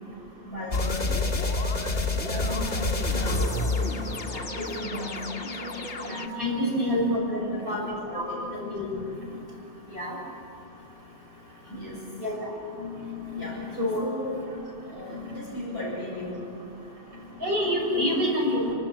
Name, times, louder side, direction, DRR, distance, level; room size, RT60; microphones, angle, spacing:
voice 1, 0.4-1.0 1.8-3.4 3.8-8.4 11.6-12.6 13.3-13.7 14.0-14.4 14.8-17.0, left 1 dB, 20° left, -11 dB, 7.8 m, -37 dB
sound 1, 0.7-6.3, left 2 dB, 90° left, 1.9 m, -28 dB
voice 2, 6.1-8.2 8.5-9.0 9.9-10.2 12.2-12.4 12.8-12.9 13.8-14.0 17.4-18.7, left 1 dB, 55° right, -3 dB, 6.5 m, -27 dB
30.0 x 13.0 x 8.8 m, 2.6 s
omnidirectional pair, 1.2 m